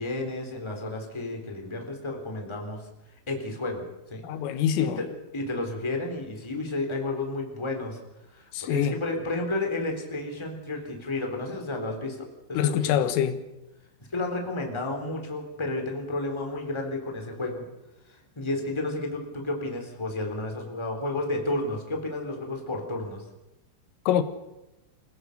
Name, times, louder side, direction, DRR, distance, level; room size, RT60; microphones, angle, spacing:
voice 1, 0.0-2.9 3.3-3.8 4.1-4.2 4.8-5.0 5.3-8.0 8.3-13.0 14.1-17.6 18.3-23.2, left 2 dB, 5° left, 2.7 m, -31 dB
voice 2, 4.2-5.0 8.5-9.0 12.6-13.4 24.1-24.2, left 10 dB, 90° left, 3.9 m, -25 dB
28.0 x 17.0 x 6.6 m
omnidirectional pair, 5.6 m